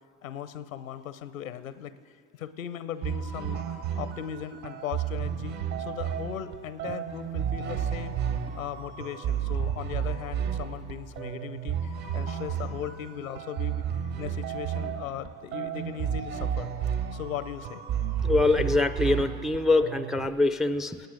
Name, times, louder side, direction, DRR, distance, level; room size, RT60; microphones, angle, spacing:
voice 1, 0.2-1.9 2.3-8.2 8.5-13.9 14.2-16.7 17.1-17.9, left 9 dB, 85° left, 15 dB, 0.7 m, -38 dB
sound 1, 3.0-20.3, right 8 dB, 60° right, 1.5 m, -32 dB
voice 2, 18.2-21.1, left 2 dB, ahead, 13 dB, 0.3 m, -24 dB
18.5 x 8.9 x 7.6 m, 2.2 s
hypercardioid pair, 70°, 39 cm